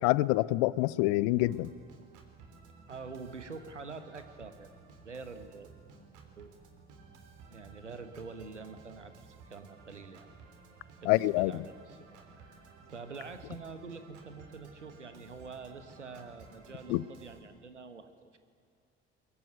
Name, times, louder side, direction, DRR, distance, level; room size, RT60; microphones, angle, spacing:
voice 1, 0.0-1.7 11.1-11.5 16.9-17.0, left 19 dB, 65° left, 21 dB, 0.7 m, -26 dB
Organ, 1.4-17.4, right 4 dB, 60° right, 3.5 m, -55 dB
voice 2, 2.9-4.7 5.0-5.7 6.4-6.5 7.4-10.3 11.0-12.0 12.3-18.4, right 4 dB, 90° right, 10 dB, 1.3 m, -46 dB
22.5 x 22.0 x 9.4 m, 2.2 s
figure-of-eight pair, 55°, 35 cm